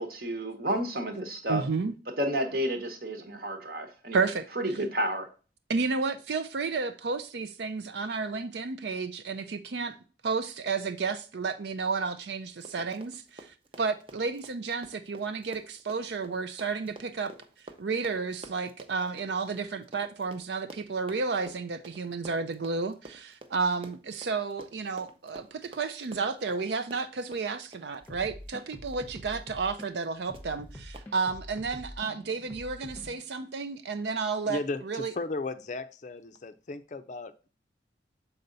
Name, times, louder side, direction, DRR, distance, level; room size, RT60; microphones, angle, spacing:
voice 1, 0.0-1.6 2.2-4.2 4.6-5.3, right 1 dB, 50° right, 1.2 m, -31 dB
voice 2, 1.5-1.9 4.1-4.5 5.7-10.0 10.2-17.3 17.8-35.1, right 4 dB, 65° right, 0.5 m, -32 dB
Run, 12.4-29.1 29.3-29.5 29.8-30.1 30.3-30.4 30.9-31.1, right 2 dB, 30° right, 0.7 m, -50 dB
sound 1, 28.0-29.9 30.3-33.2, left 1 dB, 15° left, 0.9 m, -45 dB
voice 3, 34.5-37.5, left 3 dB, 40° left, 0.5 m, -36 dB
6.9 x 4.3 x 3.9 m
head